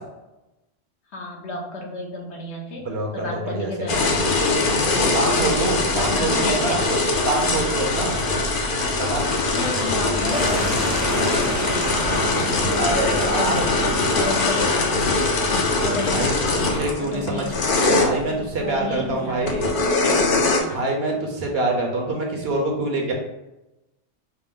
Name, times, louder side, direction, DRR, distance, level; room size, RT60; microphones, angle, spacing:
voice 1, 1.1-4.4 5.2-5.6 5.9-6.9 9.5-12.8 13.3-15.4 15.8-16.7 17.0-17.7 18.2-21.0, left 2 dB, 70° left, -1 dB, 1.1 m, -32 dB
voice 2, 2.8-3.9 5.1-6.8 7.2-8.1 9.0-9.2 12.8-13.6 15.9-16.3 16.6-17.4 17.8-19.7 20.7-23.1, right 2 dB, 60° right, 0 dB, 1.1 m, -25 dB
sound 1, 3.9-18.1 19.5-20.6, left 3 dB, 55° left, 0.7 m, -22 dB
sound 2, 10.2-14.5, right 1 dB, 25° right, 0.4 m, -29 dB
5.8 x 2.0 x 3.6 m, 0.96 s
omnidirectional pair, 1.2 m